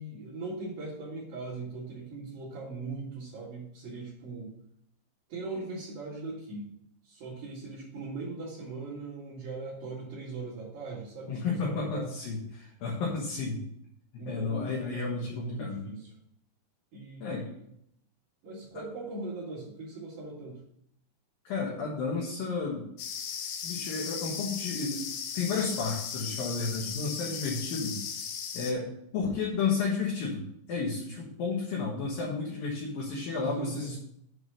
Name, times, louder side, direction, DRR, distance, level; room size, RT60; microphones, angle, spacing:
voice 1, 0.0-4.5 5.3-6.7 7.0-12.1 14.2-16.1 16.9-17.7 18.4-20.6 33.4-34.0, right 3 dB, 55° right, -8 dB, 3.6 m, -40 dB
voice 2, 11.3-13.6 14.1-15.8 17.2-17.5 21.4-22.9 23.6-25.1 25.3-28.0 28.5-34.0, left 4 dB, 65° left, -4 dB, 2.5 m, -32 dB
sound 1, 23.0-28.7, left 7 dB, 90° left, 3.6 m, -37 dB
7.9 x 4.8 x 6.6 m, 0.72 s
omnidirectional pair, 5.5 m